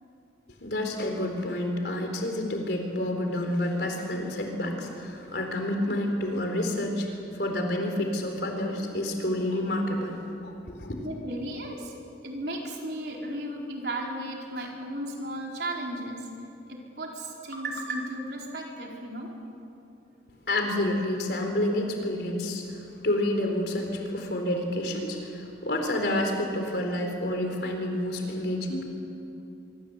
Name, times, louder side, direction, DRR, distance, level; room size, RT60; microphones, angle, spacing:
voice 1, 0.6-10.2 10.4-11.1 20.5-28.9, left 1 dB, 60° left, 4 dB, 4.2 m, -29 dB
voice 2, 11.0-11.9 12.2-16.3 16.7-19.3, right 1 dB, 60° right, -1 dB, 4.6 m, -35 dB
24.5 x 24.5 x 8.3 m, 2.8 s
head